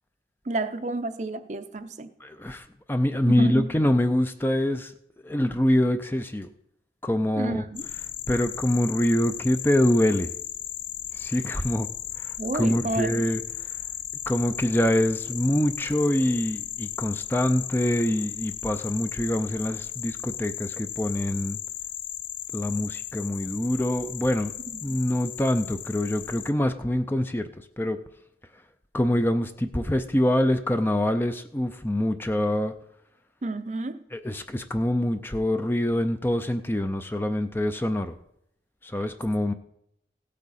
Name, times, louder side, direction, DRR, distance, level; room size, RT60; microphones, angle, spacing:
voice 1, 0.5-2.1 3.3-3.7 7.4-7.8 12.4-13.1 24.7-24.8 33.4-34.0, right 2 dB, 40° right, 10 dB, 0.6 m, -30 dB
voice 2, 2.2-4.9 5.2-6.5 7.0-7.6 8.3-10.3 11.1-11.9 12.2-13.4 14.3-21.6 22.5-24.5 24.8-27.5 27.8-28.0 28.9-32.7 34.1-38.2 38.8-39.5, left 1 dB, 10° left, 9 dB, 0.4 m, -25 dB
sound 1, 7.7-26.5, left 11 dB, 85° left, 0.6 m, -36 dB
16.5 x 8.5 x 4.2 m, 0.76 s
head